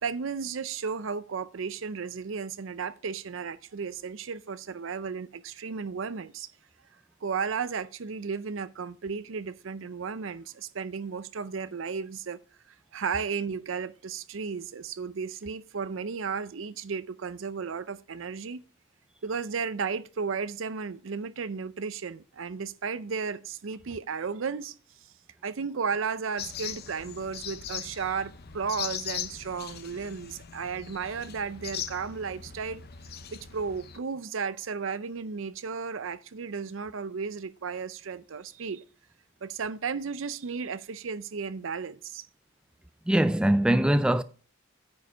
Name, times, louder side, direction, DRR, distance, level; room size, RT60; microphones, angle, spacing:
voice 1, 0.0-6.5 7.2-12.4 12.9-18.6 19.2-24.7 25.4-32.8 33.3-38.8 39.4-42.3, right 5 dB, 65° right, 0.5 m, -34 dB
sound 1, 26.4-34.0, left 9 dB, 50° left, 0.7 m, -40 dB
voice 2, 43.1-44.2, right 1 dB, 5° right, 0.3 m, -22 dB
9.4 x 5.0 x 5.6 m
head